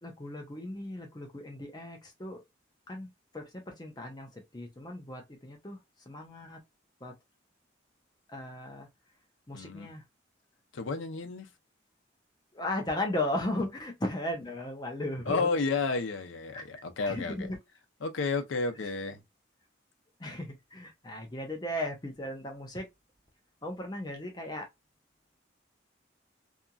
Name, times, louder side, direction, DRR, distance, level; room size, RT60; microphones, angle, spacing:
voice 1, 0.0-2.4 2.9-5.8 6.1-6.6 7.0-7.1 8.3-8.9 9.5-10.0 12.5-15.5 16.5-16.6 17.0-17.6 20.2-22.9 23.6-24.7, left 1 dB, 20° left, 0.6 m, -36 dB
voice 2, 9.5-9.9 10.7-11.5 15.3-17.4 18.0-19.2, left 4 dB, 90° left, 0.6 m, -31 dB
2.8 x 2.5 x 2.3 m
head